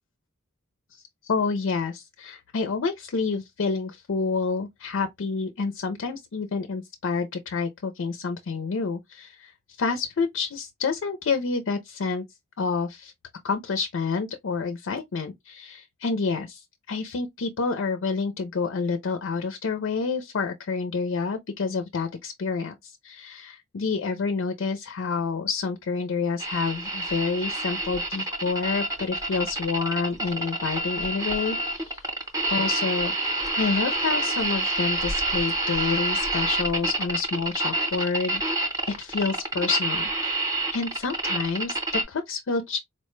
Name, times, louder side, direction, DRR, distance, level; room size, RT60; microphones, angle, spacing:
voice 1, 0.9-9.5 9.8-12.2 12.6-13.1 13.4-32.0 32.5-38.4 38.9-42.8, left 4 dB, 55° left, 0.5 m, -28 dB
sound 1, 26.4-42.0, right 2 dB, 15° right, 0.7 m, -27 dB
4.2 x 2.1 x 3.0 m
head